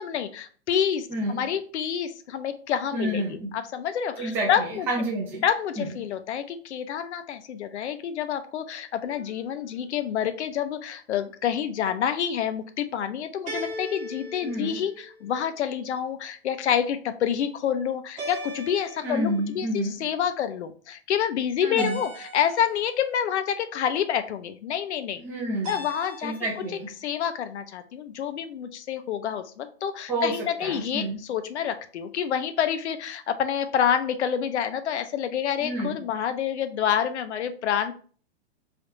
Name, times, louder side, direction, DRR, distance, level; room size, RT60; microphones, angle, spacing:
voice 1, 0.0-4.9 5.4-25.2 25.6-26.3 27.0-37.9, left 9 dB, 85° left, 9 dB, 0.6 m, -28 dB
voice 2, 1.1-1.4 2.9-3.5 4.2-5.4 5.8-5.9 14.4-14.8 19.0-19.9 21.6-22.0 25.2-25.8 26.2-26.9 30.1-30.3 30.6-31.2 35.6-36.0, right 1 dB, 5° right, -3 dB, 0.3 m, -29 dB
sound 1, 9.0-9.7 13.4-15.5 18.2-19.6 21.8-23.0 25.6-26.6, equal, 20° right, 1.0 m, -38 dB
3.4 x 2.4 x 4.0 m, 0.43 s
hypercardioid pair, 160°, 33 cm